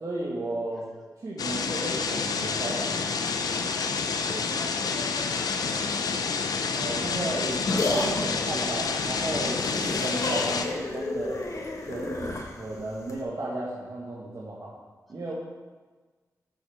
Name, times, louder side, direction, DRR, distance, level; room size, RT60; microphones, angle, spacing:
voice 1, 0.0-0.9 1.2-3.1 6.7-7.7 7.9-11.4 11.8-14.7 15.1-15.3, right 2 dB, 60° right, -6 dB, 1.7 m, -34 dB
sound 1, 1.4-10.7, left 5 dB, 80° left, 0.7 m, -28 dB
voice 2, 4.2-6.0 15.1-15.3, equal, ahead, -3 dB, 2.3 m, -44 dB
sound 2, 7.2-13.2, left 2 dB, 55° left, 1.3 m, -32 dB
6.7 x 6.4 x 6.3 m, 1.4 s
cardioid pair, 65°, 6 cm